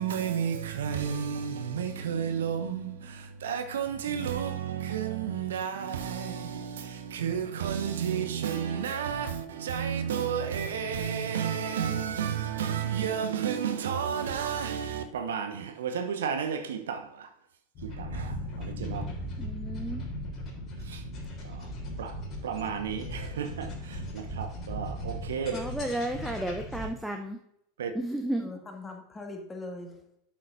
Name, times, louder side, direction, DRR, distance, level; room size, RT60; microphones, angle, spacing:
voice 1, 0.0-17.3 17.8-19.0 20.8-21.0 21.4-21.7 22.0-25.6 27.8-27.9, right 8 dB, 65° right, 0.8 m, -32 dB
sound 1, 17.8-26.9, equal, 35° left, 3.3 m, -37 dB
voice 2, 19.4-20.0 25.5-27.4 27.9-28.5, right 1 dB, 5° right, 0.7 m, -33 dB
voice 3, 28.4-30.2, left 2 dB, 15° left, 1.7 m, -41 dB
12.0 x 7.4 x 2.6 m
figure-of-eight pair, 85°, 0 cm